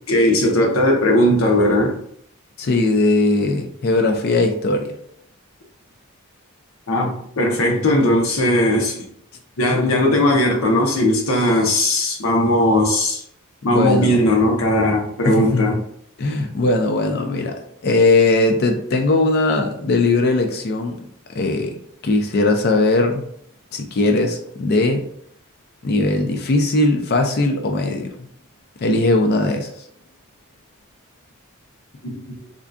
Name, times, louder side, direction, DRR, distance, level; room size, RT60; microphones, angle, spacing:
voice 1, 0.1-2.0 6.9-9.0 9.6-13.2 13.6-15.8 32.0-32.4, left 1 dB, 80° left, 0.7 m, -18 dB
voice 2, 2.6-4.9 13.6-14.1 15.2-15.8 16.2-17.5 17.8-21.0 21.4-21.7 22.0-23.3 23.7-25.0 25.8-28.3 28.8-29.7, left 2 dB, 50° left, 0.4 m, -19 dB
3.7 x 2.2 x 2.4 m
head